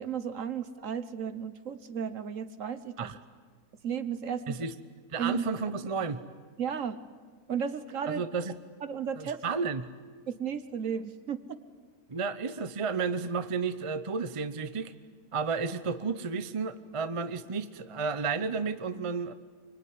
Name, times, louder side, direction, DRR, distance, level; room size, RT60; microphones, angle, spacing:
voice 1, 0.0-3.1 3.8-4.6 5.2-5.5 6.6-7.0 7.5-8.2 8.8-9.4 10.3-11.6, right 7 dB, 60° right, 12 dB, 1.3 m, -34 dB
voice 2, 5.1-6.2 8.1-8.5 9.2-9.9 12.1-14.9 15.3-19.3, right 5 dB, 25° right, 11 dB, 0.7 m, -32 dB
25.0 x 24.0 x 9.6 m, 1.5 s
omnidirectional pair, 1.6 m